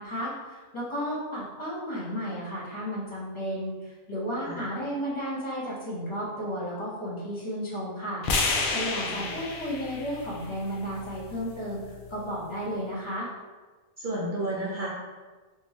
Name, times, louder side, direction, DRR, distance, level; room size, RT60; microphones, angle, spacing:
voice 1, 0.0-13.3, equal, 25° left, -7 dB, 1.2 m, -33 dB
sound 1, 8.2-12.4, left 3 dB, 65° left, 0.5 m, -32 dB
voice 2, 9.0-9.4 14.0-14.9, right 1 dB, 45° right, -7 dB, 0.7 m, -32 dB
3.7 x 2.7 x 3.0 m, 1.3 s
omnidirectional pair, 1.4 m